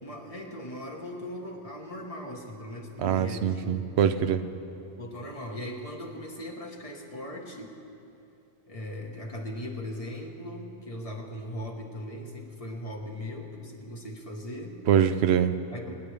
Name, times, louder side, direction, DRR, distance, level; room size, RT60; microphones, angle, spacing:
voice 1, 0.0-3.8 5.0-7.8 8.7-14.8 15.7-15.9, left 1 dB, 35° left, 0 dB, 1.4 m, -39 dB
voice 2, 3.0-4.4 14.9-15.5, right 9 dB, 80° right, 11 dB, 0.9 m, -23 dB
24.5 x 10.5 x 3.4 m, 2.7 s
omnidirectional pair, 1.1 m